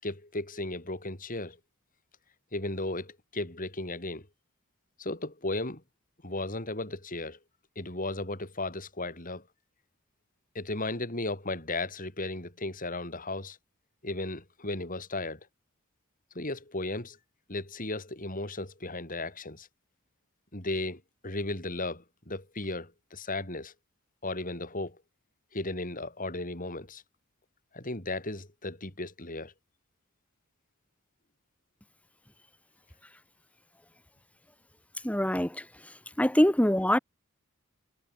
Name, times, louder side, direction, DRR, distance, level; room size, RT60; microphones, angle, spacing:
voice 1, 0.0-1.6 2.5-4.3 5.0-5.8 6.2-7.4 7.7-9.4 10.5-13.6 14.0-15.4 16.3-17.2 17.5-19.7 20.5-23.7 24.2-25.0 25.5-27.0 27.7-29.5, left 2 dB, 40° left, 6.7 m, -35 dB
voice 2, 35.0-35.6 36.2-37.0, equal, 5° left, 1.5 m, -24 dB
head